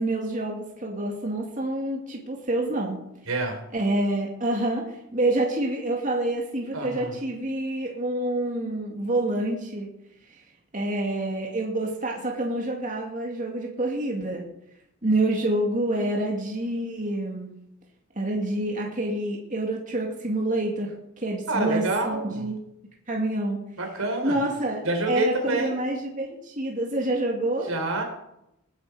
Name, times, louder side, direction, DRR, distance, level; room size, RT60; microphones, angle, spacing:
voice 1, 0.0-3.0 3.7-9.9 10.3-10.4 10.7-14.4 15.0-17.5 18.2-22.6 23.1-23.6 24.2-27.7, right 1 dB, 40° right, 0 dB, 2.3 m, -27 dB
voice 2, 3.3-3.6 6.7-7.2 21.5-22.5 23.8-24.4 24.8-25.8 27.7-28.0, right 2 dB, 80° right, 3 dB, 4.0 m, -27 dB
19.5 x 10.5 x 5.0 m, 0.83 s
head